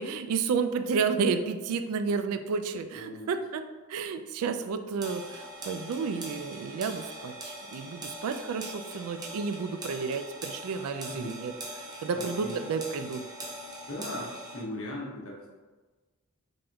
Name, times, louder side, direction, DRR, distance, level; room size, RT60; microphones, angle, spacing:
voice 1, 0.0-3.6 3.9-13.2, right 5 dB, 75° right, 9 dB, 0.3 m, -31 dB
voice 2, 2.9-3.3 11.1-11.3 12.1-12.5 13.9-15.6, left 1 dB, 65° left, -4 dB, 0.9 m, -38 dB
sound 1, 5.0-14.6, right 1 dB, 15° right, 0.6 m, -42 dB
3.9 x 3.5 x 2.3 m, 1.3 s
head